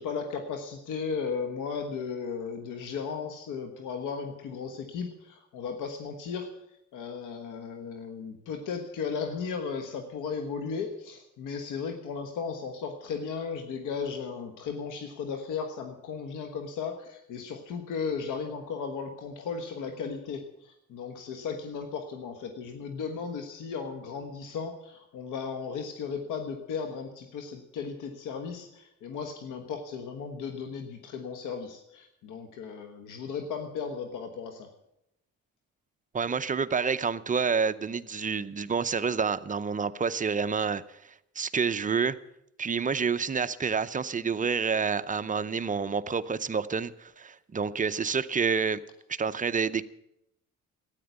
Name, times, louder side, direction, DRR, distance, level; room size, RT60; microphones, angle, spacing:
voice 1, 0.0-6.5 6.9-34.7, left 5 dB, 90° left, 6 dB, 1.3 m, -35 dB
voice 2, 36.1-40.8 41.4-42.2 42.6-48.8 49.1-49.8, right 5 dB, 25° right, 12 dB, 0.7 m, -28 dB
13.5 x 9.7 x 8.1 m, 0.82 s
cardioid pair, 90°, 30 cm